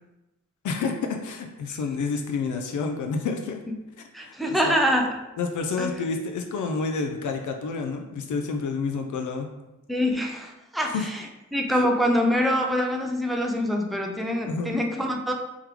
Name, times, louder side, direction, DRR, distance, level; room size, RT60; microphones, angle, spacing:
voice 1, 0.6-3.6 4.2-4.8 5.4-9.5 10.9-11.1 11.8-11.9 14.4-14.7, left 4 dB, 75° left, 4 dB, 0.5 m, -29 dB
voice 2, 4.1-5.1 5.8-5.9 9.9-15.3, equal, ahead, 2 dB, 0.3 m, -25 dB
3.6 x 3.1 x 3.3 m, 0.98 s
wide cardioid pair, 165°, 30 cm